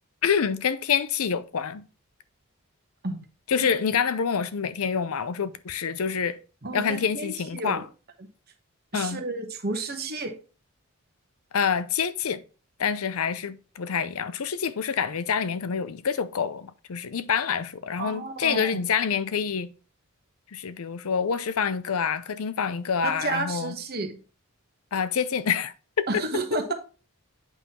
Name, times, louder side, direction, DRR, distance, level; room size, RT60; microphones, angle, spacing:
voice 1, 0.2-1.8 3.5-6.4 6.7-7.8 8.9-9.2 11.5-12.4 12.8-19.7 20.5-23.7 24.9-26.1, left 6 dB, 75° left, 0.5 m, -27 dB
voice 2, 6.6-7.8 8.9-10.3 18.0-18.8 23.0-24.2 26.1-26.7, right 3 dB, 45° right, 1.1 m, -31 dB
8.2 x 5.5 x 2.9 m
head